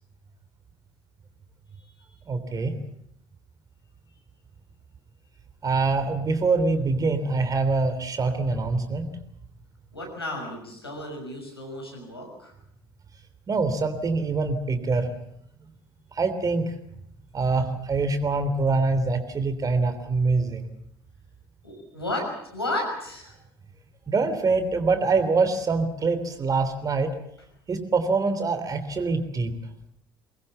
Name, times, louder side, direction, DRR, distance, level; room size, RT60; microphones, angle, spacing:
voice 1, 2.3-2.8 5.6-9.1 13.5-15.1 16.1-16.7 17.3-20.7 24.1-27.1 27.7-29.6, right 3 dB, 30° right, 9 dB, 3.2 m, -24 dB
voice 2, 9.9-12.5 21.6-23.3, left 1 dB, 85° left, 0 dB, 6.0 m, -33 dB
24.0 x 20.0 x 7.2 m, 0.74 s
figure-of-eight pair, 60°, 13 cm